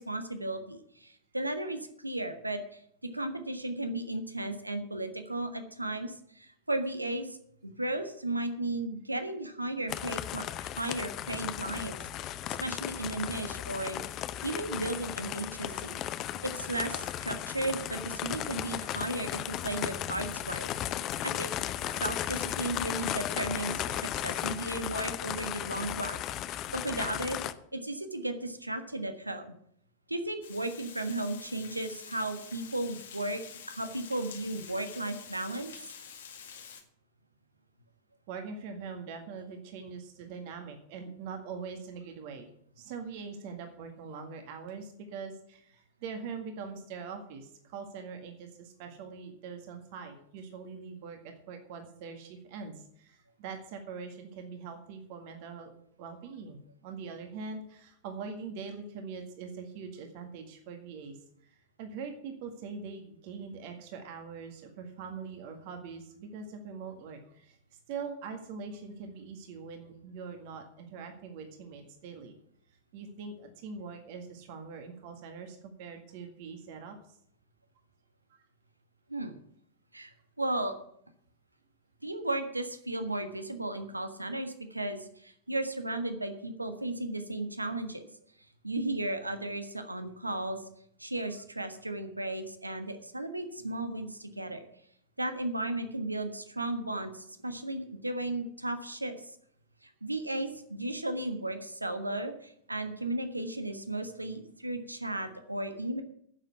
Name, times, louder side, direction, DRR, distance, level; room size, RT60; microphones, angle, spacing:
voice 1, 0.0-7.4 7.6-12.3 12.6-14.0 14.4-16.0 16.4-20.7 21.2-21.5 22.0-26.2 26.5-27.4 27.7-29.4 30.1-33.4 33.7-35.7 79.1-79.4 79.9-80.7 82.0-88.1 88.6-90.6 91.0-94.6 95.2-99.3 99.8-106.0, right 1 dB, 85° right, 8 dB, 1.4 m, -35 dB
sound 1, 9.9-27.5, left 12 dB, 35° left, 0.7 m, -35 dB
Water, 30.4-36.8, left 7 dB, 65° left, 1.9 m, -48 dB
voice 2, 38.3-42.5 42.8-55.7 56.0-72.4 72.9-77.2 78.3-78.4, right 5 dB, 50° right, 5 dB, 1.9 m, -43 dB
10.5 x 7.4 x 8.2 m, 0.68 s
figure-of-eight pair, 90°, 0 cm